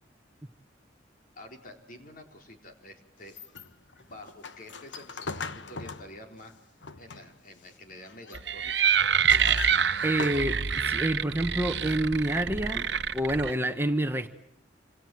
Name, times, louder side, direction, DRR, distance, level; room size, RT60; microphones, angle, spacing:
voice 1, 1.4-3.3 4.0-6.5 7.0-8.7, left 1 dB, 50° left, 4 dB, 4.2 m, -48 dB
sound 1, 3.2-7.5 7.9-8.5 8.9-10.9, left 4 dB, 80° left, 1.3 m, -40 dB
sound 2, 8.3-13.5, right 7 dB, 65° right, 1.1 m, -26 dB
voice 2, 10.0-12.9 13.1-14.3, right 1 dB, 15° right, 7 dB, 1.1 m, -28 dB
27.5 x 27.0 x 7.8 m, 0.75 s
head